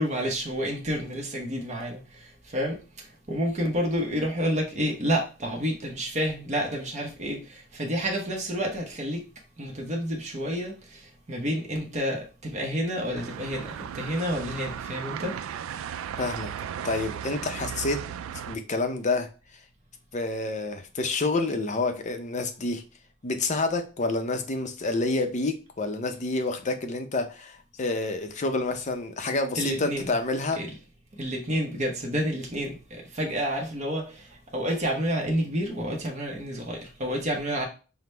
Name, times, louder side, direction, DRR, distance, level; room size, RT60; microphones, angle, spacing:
voice 1, 0.0-2.0 2.5-2.8 3.3-9.2 9.6-11.0 11.3-15.3 29.5-30.1 30.6-30.7 31.2-34.3 34.5-37.7, equal, 35° right, 0.9 m, -29 dB
sound 1, 13.1-18.6, right 8 dB, 80° right, 0.3 m, -36 dB
voice 2, 16.2-16.5 16.8-18.0 18.5-19.3 20.1-22.8 23.2-30.6, left 3 dB, 35° left, 0.5 m, -28 dB
5.9 x 2.1 x 3.3 m
head